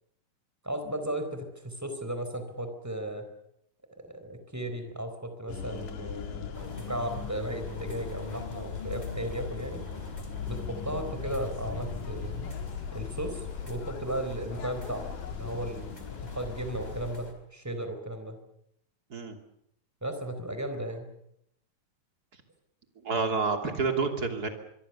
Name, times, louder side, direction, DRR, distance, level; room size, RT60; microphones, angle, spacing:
voice 1, 0.6-3.3 4.0-9.8 10.5-12.5 12.9-15.1 15.3-18.4 20.0-21.1, right 1 dB, 5° right, 7 dB, 3.9 m, -35 dB
sound 1, 5.5-17.2, left 7 dB, 70° left, 3.5 m, -39 dB
sound 2, 6.5-17.3, left 3 dB, 10° left, 4.2 m, -44 dB
voice 2, 23.0-24.5, right 4 dB, 30° right, 5 dB, 3.0 m, -28 dB
25.0 x 24.0 x 7.0 m, 0.76 s
omnidirectional pair, 3.9 m